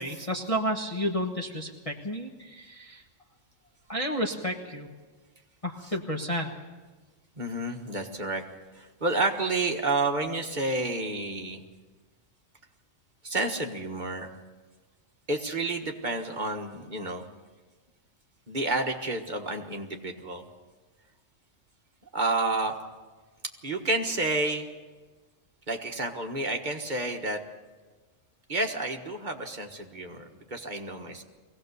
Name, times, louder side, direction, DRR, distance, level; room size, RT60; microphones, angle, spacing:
voice 1, 0.0-3.0 3.9-4.9 5.6-6.5, equal, 25° left, -2 dB, 1.4 m, -31 dB
voice 2, 7.4-8.4 8.7-11.6 13.2-14.3 15.3-17.3 18.5-20.4 22.1-22.8 23.6-24.7 25.7-27.4 28.5-31.2, right 2 dB, 35° right, 3 dB, 1.6 m, -30 dB
22.5 x 17.0 x 6.8 m, 1.3 s
omnidirectional pair, 1.3 m